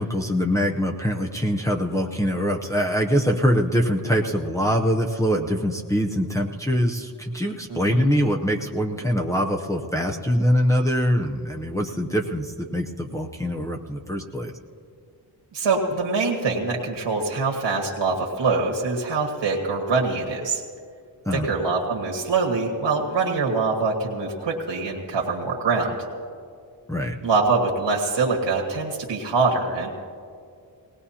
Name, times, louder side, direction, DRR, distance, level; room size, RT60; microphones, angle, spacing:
voice 1, 0.0-14.5 21.3-21.5 26.9-27.2, equal, 5° left, 1 dB, 0.6 m, -23 dB
voice 2, 7.7-8.0 15.5-20.6 21.3-26.0 27.2-29.9, right 4 dB, 85° right, -2 dB, 1.8 m, -24 dB
19.5 x 19.0 x 2.8 m, 2.2 s
wide cardioid pair, 150°, 43 cm